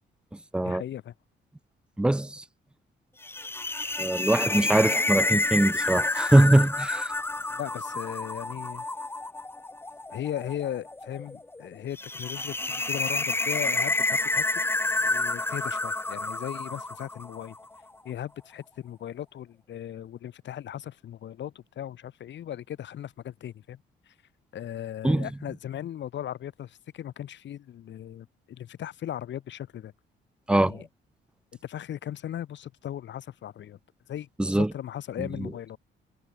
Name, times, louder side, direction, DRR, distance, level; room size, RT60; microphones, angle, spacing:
voice 1, 0.6-1.1 7.5-8.8 10.1-14.6 15.0-17.6 18.0-23.8 24.1-24.2 24.5-29.9 30.5-30.9 31.6-33.8 34.1-35.8, left 11 dB, 65° left, 1.7 m, -37 dB
voice 2, 2.0-2.4 4.0-7.1 25.0-25.3 30.5-30.7 34.4-34.7 35.4-35.5, right 1 dB, 5° right, 0.4 m, -22 dB
sound 1, 3.2-17.6, left 2 dB, 10° left, 0.8 m, -29 dB
cardioid pair, 90°, 20 cm